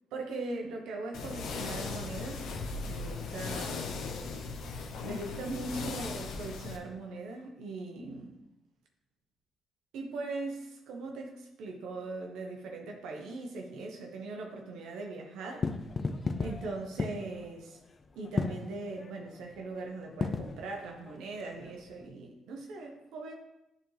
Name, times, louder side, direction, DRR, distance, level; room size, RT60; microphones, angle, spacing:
voice 1, 0.1-2.5 2.9-3.9 4.8-8.3 9.9-15.7 16.4-17.8 18.1-23.3, right 3 dB, 90° right, 1 dB, 1.0 m, -40 dB
sound 1, 1.1-6.8, left 4 dB, 75° left, 0.8 m, -38 dB
sound 2, 15.5-22.1, left 4 dB, 35° left, 0.5 m, -36 dB
10.0 x 4.3 x 3.3 m, 0.88 s
cardioid pair, 90°, 0 cm